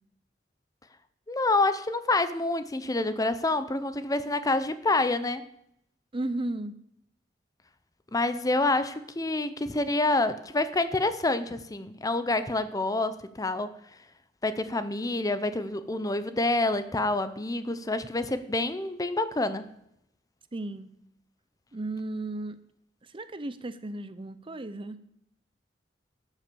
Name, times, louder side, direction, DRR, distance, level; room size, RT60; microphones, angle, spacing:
voice 1, 1.3-5.4 8.1-13.7 14.4-19.7, left 2 dB, 20° left, 12 dB, 0.7 m, -27 dB
voice 2, 6.1-6.8 20.5-20.9 21.7-22.6 23.0-25.0, right 2 dB, 30° right, 13 dB, 0.7 m, -34 dB
12.5 x 7.4 x 6.9 m, 0.75 s
head